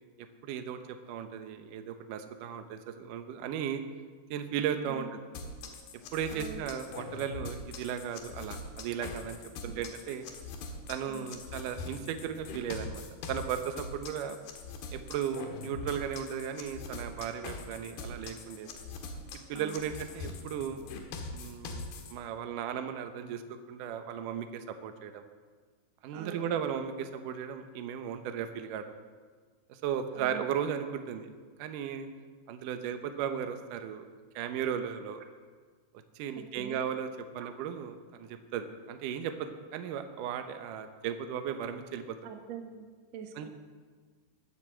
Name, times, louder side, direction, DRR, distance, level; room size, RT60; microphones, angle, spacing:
voice 1, 0.4-3.8 4.3-5.2 6.1-9.4 9.6-10.3 10.9-13.0 13.3-14.4 14.9-18.8 19.5-20.8 21.3-23.4 23.7-25.2 26.0-28.8 29.7-31.3 31.6-32.1 32.5-34.1 34.4-35.2 36.2-37.1 37.3-42.2 43.4-43.5, right 8 dB, 85° right, 7 dB, 1.8 m, -36 dB
sound 1, 5.3-22.1, left 3 dB, 70° left, 3.3 m, -42 dB
voice 2, 6.3-6.7 9.7-9.8 11.1-11.4 19.5-19.9 26.1-26.6 30.2-30.4 36.4-36.8 42.2-43.5, right 8 dB, 65° right, 5 dB, 1.7 m, -44 dB
21.0 x 7.9 x 7.6 m, 1.5 s
omnidirectional pair, 5.1 m